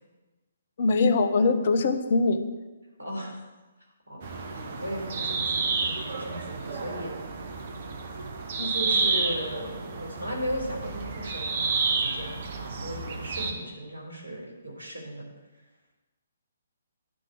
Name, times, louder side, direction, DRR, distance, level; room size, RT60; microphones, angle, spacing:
voice 1, 0.8-2.4 8.6-8.7, left 3 dB, 45° left, 9 dB, 1.0 m, -22 dB
voice 2, 3.0-3.5 4.1-7.1 8.6-15.2, equal, 80° right, 0 dB, 3.8 m, -36 dB
sound 1, 4.2-13.5, right 4 dB, 45° right, 1.4 m, -30 dB
10.5 x 6.0 x 8.8 m, 1.2 s
figure-of-eight pair, 130°, 0 cm